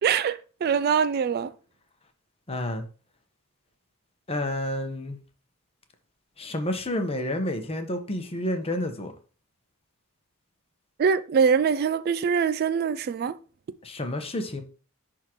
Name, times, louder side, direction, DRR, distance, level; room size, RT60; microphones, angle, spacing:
voice 1, 0.0-1.5 11.0-13.3, right 6 dB, 45° right, 0.3 m, -23 dB
voice 2, 2.5-2.8 4.3-5.2 6.4-9.1 13.8-14.6, left 1 dB, 30° left, 1.0 m, -30 dB
11.0 x 3.7 x 3.0 m
head